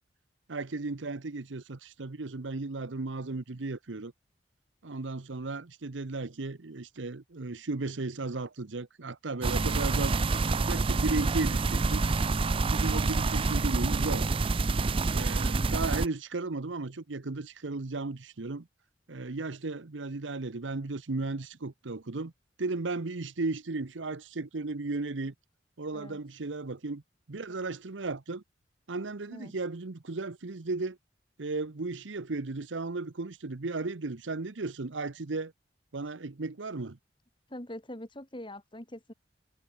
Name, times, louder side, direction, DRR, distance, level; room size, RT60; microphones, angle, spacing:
voice 1, 0.5-4.1 4.8-12.1 12.7-14.3 15.1-18.7 19.1-22.3 22.6-25.3 25.8-27.0 27.3-28.4 28.9-31.0 31.4-35.5 35.9-37.0, right 3 dB, 85° right, 0.9 m, -35 dB
sound 1, 9.4-16.1, right 3 dB, 30° right, 0.4 m, -27 dB
voice 2, 37.5-39.1, left 1 dB, 25° left, 2.9 m, -43 dB
head